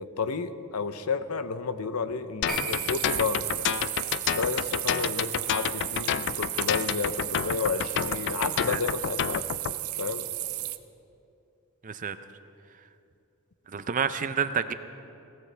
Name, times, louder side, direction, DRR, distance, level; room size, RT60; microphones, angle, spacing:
voice 1, 0.0-3.5 4.4-9.5 10.0-10.3, left 5 dB, 85° left, 12 dB, 0.7 m, -31 dB
sound 1, 2.4-9.7, left 9 dB, 55° left, 0.3 m, -29 dB
Piano, 2.5-9.4 9.7-9.8, equal, ahead, 1.9 m, -44 dB
sound 2, 2.5-10.8, right 16 dB, 80° right, 0.6 m, -34 dB
voice 2, 11.8-12.2 13.7-14.7, right 6 dB, 35° right, 11 dB, 0.5 m, -29 dB
21.0 x 16.5 x 3.4 m, 2.6 s
head